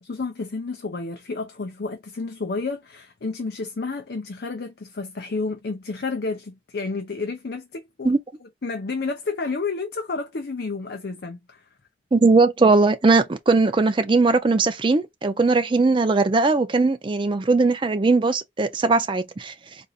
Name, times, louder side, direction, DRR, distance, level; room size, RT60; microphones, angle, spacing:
voice 1, 0.0-8.1 8.4-11.7, left 3 dB, 60° left, 0.6 m, -31 dB
voice 2, 12.1-19.5, right 3 dB, 30° right, 0.4 m, -19 dB
3.8 x 2.6 x 2.4 m
head